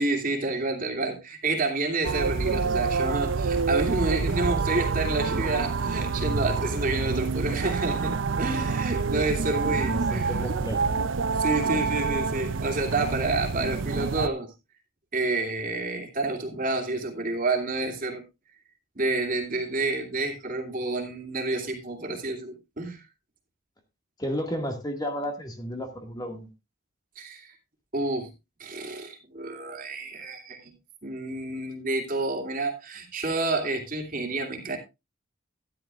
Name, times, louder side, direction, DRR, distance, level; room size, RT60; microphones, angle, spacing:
voice 1, 0.0-10.3 11.4-14.5 15.1-18.2 19.0-23.0 27.2-27.5 27.9-28.3 28.6-30.7 31.0-34.8, right 2 dB, 40° right, 3 dB, 2.7 m, -29 dB
sound 1, 2.0-14.3, right 4 dB, 75° right, 0.6 m, -27 dB
voice 2, 9.7-11.1 24.2-26.5, equal, 20° left, 4 dB, 1.9 m, -33 dB
14.0 x 11.0 x 2.5 m, 0.24 s
head